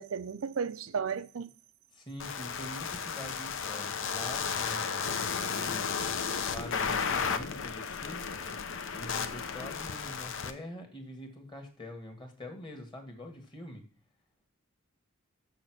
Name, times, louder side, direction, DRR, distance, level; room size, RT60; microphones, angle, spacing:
voice 1, 0.0-1.5 5.1-5.2, right 6 dB, 80° right, 0.5 m, -34 dB
voice 2, 1.9-5.8 6.4-8.6 8.9-13.8, left 1 dB, 25° left, 1.7 m, -45 dB
sound 1, 2.2-10.5, left 6 dB, 65° left, 0.7 m, -33 dB
6.6 x 6.4 x 6.1 m
head